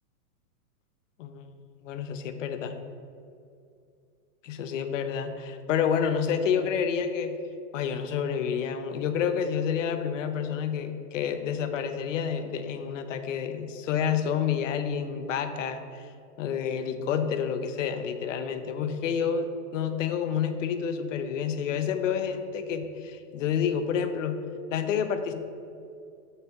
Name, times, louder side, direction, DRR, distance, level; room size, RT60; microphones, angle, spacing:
voice 1, 1.8-2.7 4.4-7.4 7.7-16.1 16.4-24.4 24.7-25.3, left 7 dB, 55° left, 8 dB, 0.7 m, -29 dB
6.6 x 4.5 x 5.8 m, 2.5 s
hypercardioid pair, 160°, 46 cm